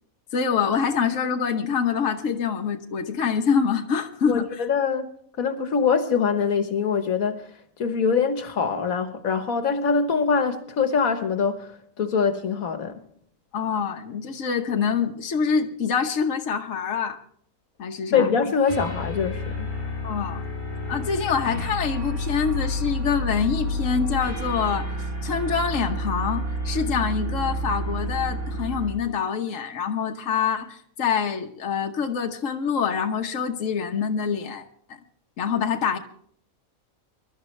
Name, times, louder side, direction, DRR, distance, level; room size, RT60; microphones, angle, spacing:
voice 1, 0.3-4.6 13.5-17.2 17.8-18.3 20.0-20.4 20.9-24.9 25.2-34.6 34.9-35.0 35.4-36.0, left 6 dB, 65° left, 1.4 m, -25 dB
voice 2, 4.3-5.1 5.4-13.0 18.1-19.7, left 5 dB, 85° left, 1.7 m, -24 dB
sound 1, 18.7-29.0, equal, 65° right, 7.6 m, -30 dB
23.0 x 12.0 x 3.3 m
omnidirectional pair, 1.4 m